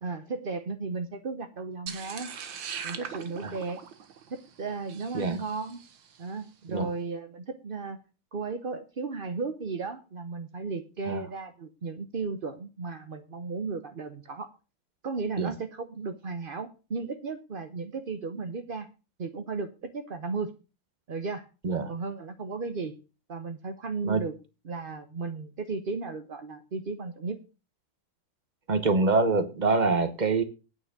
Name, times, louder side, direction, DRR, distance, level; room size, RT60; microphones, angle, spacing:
voice 1, 0.0-2.3 2.8-3.8 4.3-5.8 6.2-8.0 8.3-14.6 15.0-18.9 19.2-20.5 21.1-21.5 21.9-23.0 23.3-24.4 24.6-27.4, right 4 dB, 45° right, 0.7 m, -35 dB
sound 1, 1.9-6.2, right 7 dB, 75° right, 2.0 m, -41 dB
voice 2, 28.7-30.4, right 3 dB, 30° right, 1.0 m, -25 dB
9.6 x 9.2 x 6.5 m
omnidirectional pair, 2.1 m